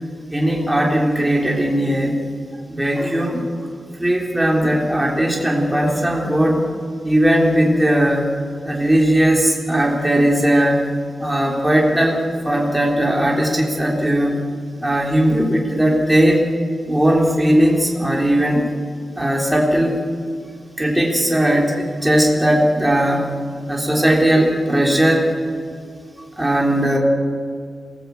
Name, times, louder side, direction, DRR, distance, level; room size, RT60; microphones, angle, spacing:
voice 1, 0.3-2.2 2.7-3.4 4.0-6.7 7.0-8.3 8.6-10.8 11.2-12.2 12.4-14.4 14.8-16.4 16.9-18.7 19.2-20.0 20.8-23.3 23.7-25.3 26.4-27.0, right 1 dB, 10° right, -1 dB, 3.8 m, -18 dB
26.5 x 19.5 x 8.4 m, 2.3 s
wide cardioid pair, 140°, 0 cm